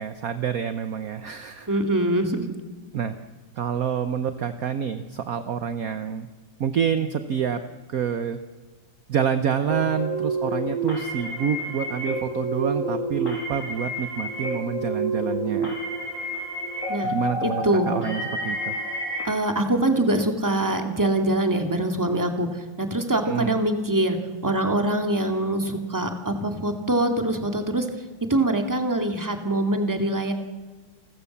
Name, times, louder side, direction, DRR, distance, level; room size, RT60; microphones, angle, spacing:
voice 1, 0.0-1.7 2.9-3.1 3.6-6.3 6.6-7.6 7.9-8.4 9.1-15.7 17.0-18.8 23.2-23.6, right 7 dB, 55° right, 10 dB, 1.2 m, -27 dB
voice 2, 1.7-2.4 16.9-17.1 17.4-17.9 19.2-24.2 24.4-27.9 28.3-30.3, right 1 dB, 10° right, 5 dB, 2.0 m, -24 dB
sound 1, 9.7-19.2, right 2 dB, 40° left, 6.3 m, -29 dB
29.0 x 14.0 x 7.2 m, 1.4 s
omnidirectional pair, 2.0 m